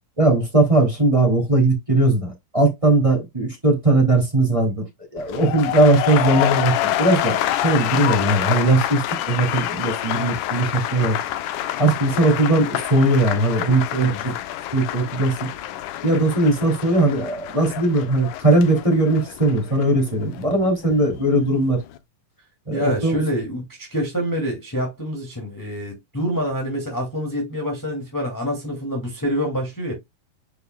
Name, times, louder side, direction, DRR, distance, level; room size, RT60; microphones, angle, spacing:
voice 1, 0.2-4.8 5.1-11.2 11.8-14.3 14.7-15.5 16.0-21.8 22.7-23.2, right 2 dB, 10° right, 2.5 m, -19 dB
sound 1, 5.2-21.2 21.5-22.0, left 13 dB, 75° left, 2.0 m, -27 dB
voice 2, 22.7-29.9, equal, 5° left, 1.7 m, -26 dB
9.7 x 5.4 x 2.3 m
omnidirectional pair, 4.2 m